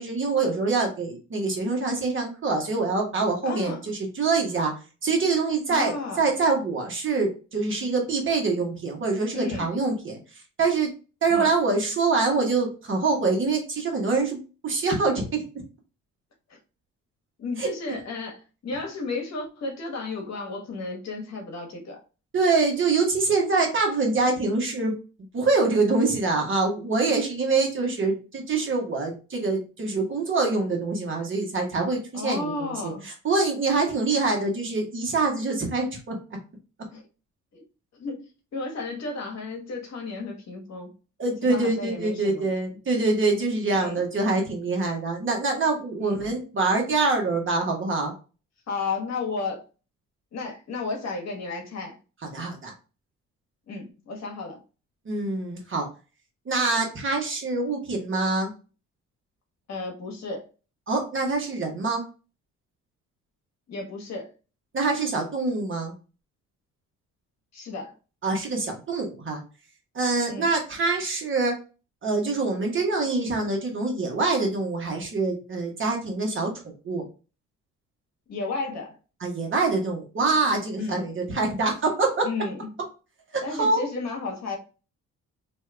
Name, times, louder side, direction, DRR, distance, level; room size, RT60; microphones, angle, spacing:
voice 1, 0.0-4.7 5.0-10.9 11.2-14.4 14.6-15.4 17.6-17.7 22.3-24.9 25.3-36.1 41.2-48.1 52.2-52.7 55.0-55.9 56.5-58.5 60.9-62.0 64.7-65.9 68.2-69.4 69.9-71.5 72.0-77.0 79.2-82.3 83.3-83.8, right 3 dB, 40° right, 1 dB, 1.2 m, -25 dB
voice 2, 3.4-3.8 5.7-6.2 9.3-9.7 11.3-11.5 16.5-16.6 17.4-22.0 32.1-33.0 36.9-37.0 37.5-37.6 38.0-40.9 41.4-42.5 43.7-44.0 46.0-46.2 48.7-49.6 50.3-52.0 53.7-54.6 59.7-60.4 63.7-64.3 67.5-67.9 70.3-70.5 78.3-79.0 80.8-81.0 82.2-82.7 83.4-84.6, left 3 dB, 60° left, 2 dB, 1.1 m, -33 dB
2.7 x 2.4 x 3.2 m, 0.33 s
cardioid pair, 90°, 30 cm